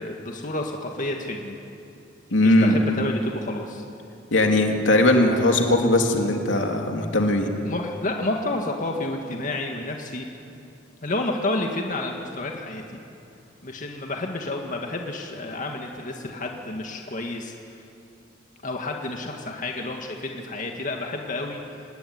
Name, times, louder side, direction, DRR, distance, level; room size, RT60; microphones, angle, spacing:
voice 1, 0.0-1.6 2.4-3.8 7.5-10.3 11.0-13.0 13.6-17.8 18.6-21.8, left 2 dB, 45° left, 2 dB, 2.0 m, -30 dB
voice 2, 2.3-2.8 4.3-7.5, left 1 dB, 80° left, 3 dB, 2.9 m, -19 dB
26.0 x 19.5 x 9.7 m, 2.6 s
head